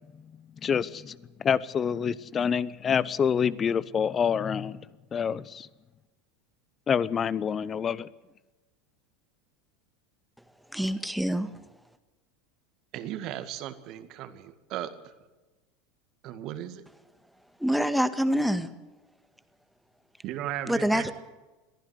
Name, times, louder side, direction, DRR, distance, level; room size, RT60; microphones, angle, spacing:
voice 1, 0.6-1.1 1.4-4.8 5.1-5.7 6.9-8.1, left 7 dB, 30° left, 19 dB, 0.9 m, -27 dB
voice 2, 10.7-11.5 17.6-18.7 20.7-21.1, equal, ahead, 10 dB, 1.7 m, -26 dB
voice 3, 12.9-15.1 16.2-16.8 20.2-21.1, right 12 dB, 50° right, 11 dB, 2.0 m, -36 dB
23.0 x 15.0 x 8.1 m, 1.1 s
figure-of-eight pair, 80°, 0 cm